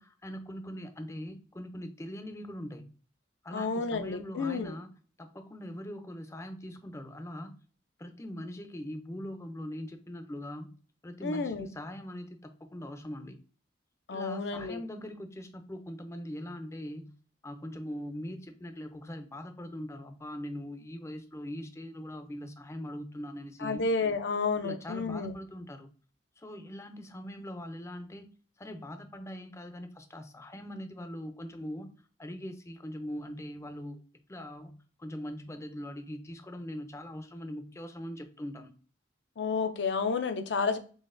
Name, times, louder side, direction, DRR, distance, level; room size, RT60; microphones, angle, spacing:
voice 1, 0.0-2.9 3.4-4.9 5.2-7.5 8.0-10.7 11.0-13.4 14.1-17.1 17.4-23.8 24.6-25.9 26.4-28.3 28.6-31.9 32.2-34.0 34.3-34.7 35.0-38.7, equal, 15° left, 0.5 m, -41 dB
voice 2, 3.5-4.7 11.2-11.7 14.1-14.8 23.6-25.3 39.4-40.8, left 4 dB, 65° left, 0.5 m, -31 dB
3.9 x 3.3 x 2.5 m
head